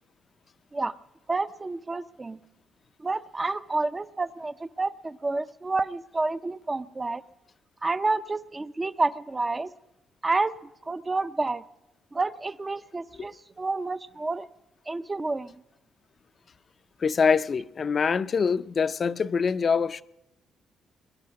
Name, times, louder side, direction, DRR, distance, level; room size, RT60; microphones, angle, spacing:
voice 1, 1.3-2.4 3.0-7.2 7.8-9.7 10.2-10.6 10.8-11.6 12.1-14.5 14.9-15.6, right 3 dB, 25° right, 0.5 m, -29 dB
voice 2, 17.0-20.0, left 5 dB, 45° left, 0.5 m, -24 dB
22.0 x 10.5 x 6.3 m
cardioid pair, 90°, 0 cm